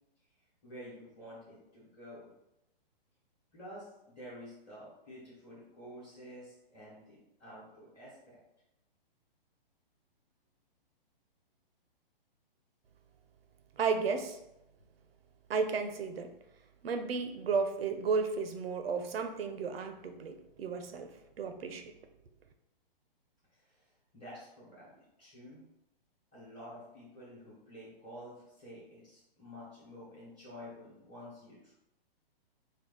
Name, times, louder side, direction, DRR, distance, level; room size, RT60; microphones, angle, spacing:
voice 1, 0.6-2.3 3.5-8.4 23.5-25.6 26.3-31.7, equal, 15° left, -11 dB, 1.1 m, -50 dB
voice 2, 13.8-14.4 15.5-16.3 16.8-21.1 21.4-21.9, right 5 dB, 80° right, 7 dB, 0.7 m, -33 dB
4.4 x 2.3 x 3.8 m, 0.87 s
hypercardioid pair, 160°, 30 cm